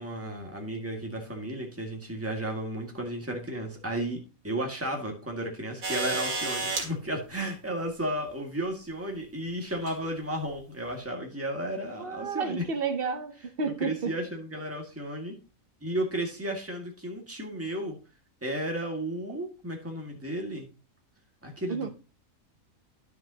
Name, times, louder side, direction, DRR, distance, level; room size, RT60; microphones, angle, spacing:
voice 1, 0.0-4.2 4.4-12.6 13.6-15.4 15.8-18.0 18.4-20.7 21.4-21.9, right 1 dB, 10° right, 1.9 m, -33 dB
sound 1, 5.8-6.9 8.3-8.4 9.7-10.0 10.9-11.0, right 3 dB, 85° right, 2.2 m, -31 dB
voice 2, 12.0-14.1 21.7-21.9, right 5 dB, 50° right, 1.0 m, -31 dB
10.5 x 6.9 x 2.9 m
omnidirectional pair, 1.4 m